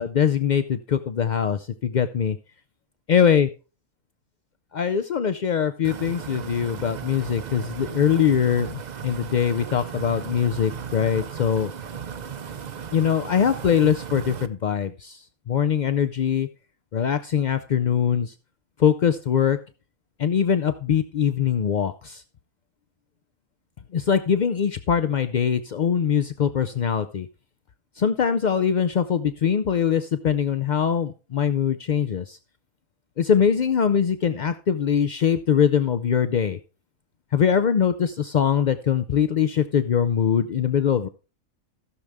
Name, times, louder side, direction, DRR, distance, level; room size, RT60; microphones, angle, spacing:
voice 1, 0.0-2.4 3.1-3.5 4.7-11.7 12.9-16.5 16.9-18.3 18.8-19.6 20.2-22.2 23.9-27.3 28.0-32.4 33.2-36.6 37.3-41.1, left 8 dB, 75° left, 10 dB, 0.4 m, -22 dB
sound 1, 5.8-14.5, right 7 dB, 60° right, 0.4 m, -36 dB
15.5 x 6.6 x 3.5 m, 0.33 s
omnidirectional pair, 1.4 m